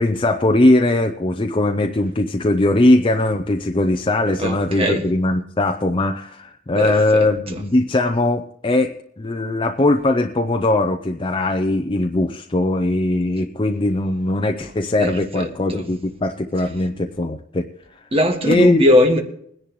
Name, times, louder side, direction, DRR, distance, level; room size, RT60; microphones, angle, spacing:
voice 1, 0.0-17.7 17.9-18.0 18.4-18.8, left 2 dB, 25° left, 0.6 m, -20 dB
voice 2, 4.4-5.1 6.8-7.6 15.0-15.8 18.1-19.2, equal, 30° right, 1.8 m, -20 dB
21.5 x 10.5 x 3.1 m
head